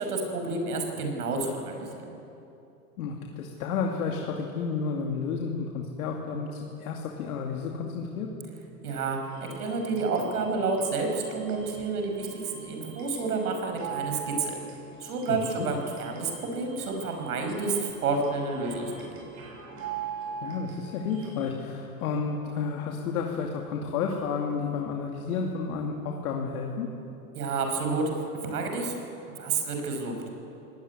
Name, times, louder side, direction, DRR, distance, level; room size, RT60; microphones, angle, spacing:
voice 1, 0.0-2.1 8.8-14.5 15.0-19.1 27.3-28.1 28.4-29.0 29.4-30.1, right 3 dB, 80° right, 4 dB, 5.8 m, -30 dB
voice 2, 3.0-8.3 15.3-15.7 20.4-26.9, left 5 dB, 70° left, 1 dB, 2.7 m, -31 dB
sound 1, 9.3-21.5, right 6 dB, 40° right, 7.6 m, -42 dB
23.5 x 18.5 x 9.7 m, 2.8 s
hypercardioid pair, 100°, 45 cm